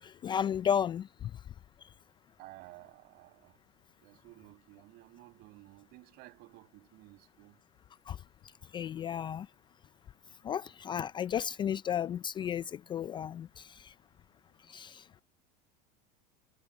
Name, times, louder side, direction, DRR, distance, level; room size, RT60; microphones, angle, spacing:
voice 1, 0.0-1.3 8.1-8.2 8.7-9.5 10.4-13.9 14.7-15.0, left 9 dB, 25° left, 0.4 m, -33 dB
voice 2, 2.4-3.6 4.0-7.6, right 20 dB, 55° right, 5.9 m, -54 dB
supercardioid pair, 135°, 20 cm